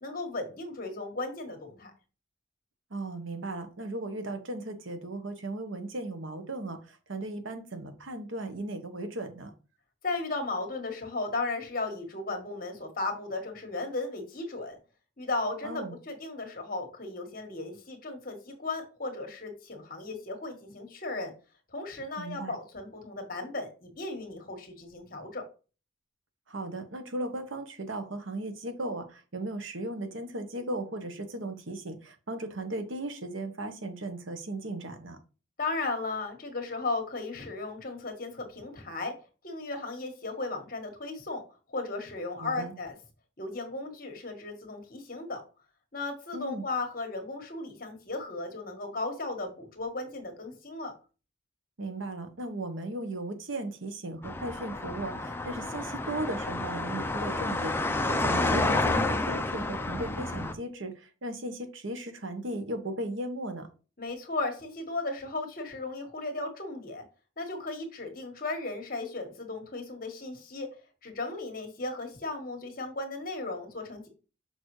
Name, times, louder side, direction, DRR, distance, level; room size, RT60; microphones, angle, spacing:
voice 1, 0.0-1.9 10.0-14.8 15.2-21.3 21.7-25.4 35.6-39.1 39.4-41.4 41.7-42.9 43.4-45.4 45.9-50.9 64.0-67.0 67.4-70.7 71.0-74.1, left 3 dB, 45° left, 4 dB, 1.5 m, -35 dB
voice 2, 2.9-9.5 15.6-15.9 22.2-22.5 26.5-35.2 42.4-42.7 46.3-46.7 51.8-63.7, right 1 dB, 75° right, 8 dB, 1.1 m, -36 dB
sound 1, 54.2-60.5, left 2 dB, 10° left, 0.4 m, -30 dB
6.6 x 5.3 x 3.2 m, 0.34 s
head